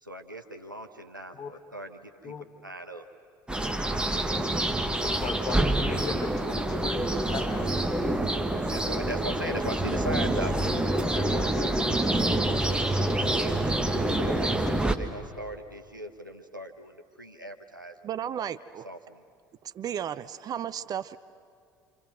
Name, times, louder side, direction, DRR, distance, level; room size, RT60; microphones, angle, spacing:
voice 1, 0.0-2.3 2.6-3.1 8.7-10.6 13.4-13.6 14.1-18.5 18.8-19.2, right 1 dB, 90° right, 4 dB, 1.1 m, -39 dB
sound 1, 3.5-14.9, right 1 dB, 10° right, 1.6 m, -27 dB
voice 2, 4.2-4.5 4.9-7.7 8.5-8.7 10.5-13.7 14.5-14.7, left 6 dB, 35° left, 6 dB, 1.6 m, -40 dB
voice 3, 18.0-18.9 19.7-21.2, right 9 dB, 40° right, 13 dB, 0.7 m, -34 dB
27.5 x 27.0 x 6.2 m, 2.2 s
figure-of-eight pair, 60°, 10 cm